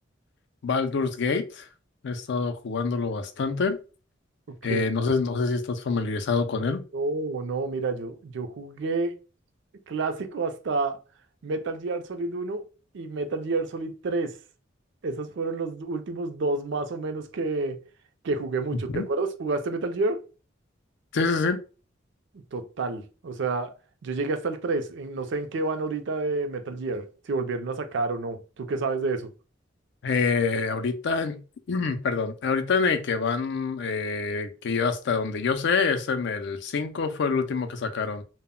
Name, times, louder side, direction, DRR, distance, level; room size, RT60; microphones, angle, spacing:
voice 1, 0.6-1.7 2.0-3.8 4.6-6.8 18.9-19.1 21.1-21.6 30.0-31.4 31.7-38.2, left 4 dB, 65° left, 0.4 m, -26 dB
voice 2, 6.9-9.2 9.9-11.0 11.4-12.6 12.9-14.4 15.0-17.8 18.2-20.2 22.5-23.7 24.0-29.3, right 3 dB, 65° right, 0.4 m, -29 dB
2.1 x 2.1 x 3.6 m
head